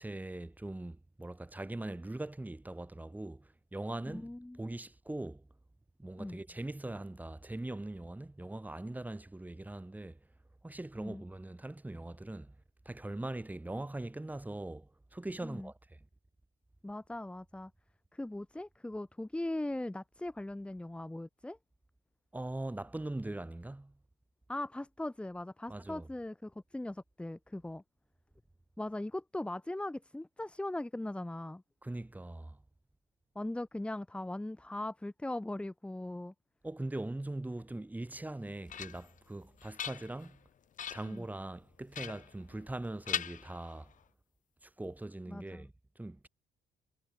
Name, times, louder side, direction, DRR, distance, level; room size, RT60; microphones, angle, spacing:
voice 1, 0.0-4.3 4.6-5.5 6.0-10.2 10.6-12.5 12.8-16.0 22.3-24.0 25.7-26.1 31.8-32.6 36.6-40.4 40.9-43.9 44.6-46.3, right 2 dB, 10° right, 6.5 m, -41 dB
voice 2, 4.1-4.6 6.2-6.4 11.0-11.2 15.4-15.7 16.8-17.7 18.1-21.6 24.5-27.8 28.8-31.6 33.3-36.3 41.0-41.3 45.3-45.7, left 1 dB, 5° left, 1.1 m, -39 dB
sound 1, 38.2-39.2 39.6-40.4 40.8-41.2 41.9-42.8 43.1-44.0, left 9 dB, 50° left, 2.6 m, -41 dB
cardioid pair, 110°, 17 cm